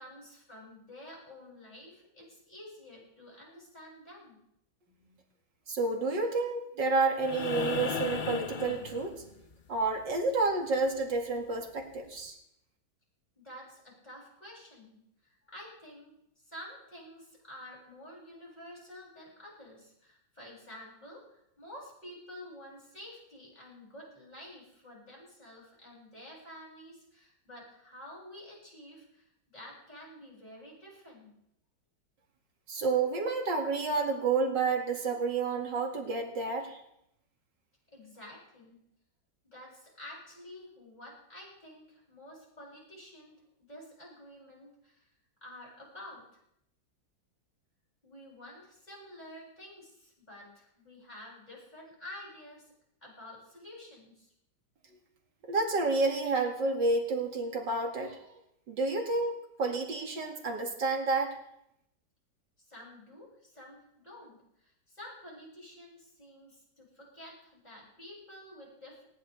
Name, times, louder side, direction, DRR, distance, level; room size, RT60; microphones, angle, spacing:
voice 1, 0.0-4.4 13.4-31.3 37.9-38.8 39.5-43.3 43.7-45.1 45.4-46.2 48.0-52.7 53.0-54.3 62.7-69.1, left 1 dB, 20° left, -5 dB, 7.1 m, -50 dB
voice 2, 5.7-9.2 9.7-12.4 32.7-36.8 55.5-58.2 58.7-59.3 59.6-61.4, right 3 dB, 65° right, 2 dB, 2.8 m, -30 dB
sound 1, 7.2-9.5 11.4-11.5, left 5 dB, 50° left, 0.6 m, -35 dB
19.5 x 17.5 x 3.5 m, 0.78 s
omnidirectional pair, 2.1 m